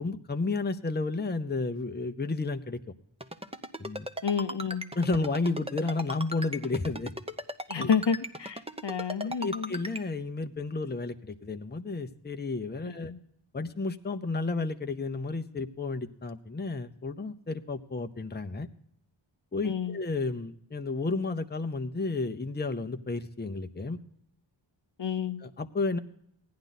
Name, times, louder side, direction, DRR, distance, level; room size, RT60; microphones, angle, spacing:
voice 1, 0.0-2.8 3.8-4.1 4.9-7.1 7.7-7.9 9.2-13.1 13.5-18.7 19.5-24.0 25.4-26.0, left 3 dB, 20° left, 8 dB, 0.6 m, -32 dB
Ringtone, 3.2-10.0, equal, 10° right, 0.8 m, -36 dB
voice 2, 4.2-4.8 7.7-9.8 12.8-13.2 19.6-20.0 25.0-25.4, left 6 dB, 60° left, 11 dB, 0.7 m, -30 dB
16.0 x 10.5 x 4.0 m, 0.72 s
wide cardioid pair, 40°, 48 cm